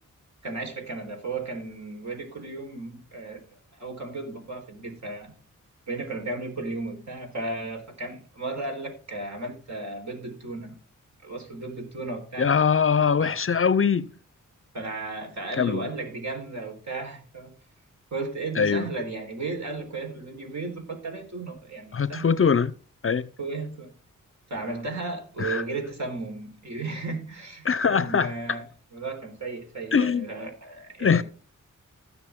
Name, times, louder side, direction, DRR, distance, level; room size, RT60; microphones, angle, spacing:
voice 1, 0.4-3.4 3.7-5.3 5.9-10.8 11.2-12.5 13.2-13.3 14.7-17.5 18.1-22.3 23.4-23.9 24.5-28.6 28.9-31.2, right 3 dB, 60° right, 4.3 m, -34 dB
voice 2, 12.4-14.1 15.6-15.9 18.5-18.9 21.9-22.7 23.0-23.3 25.4-25.6 27.6-28.6 29.9-30.3 31.0-31.2, left 6 dB, 45° left, 0.6 m, -22 dB
16.0 x 6.3 x 3.7 m
cardioid pair, 60°, 32 cm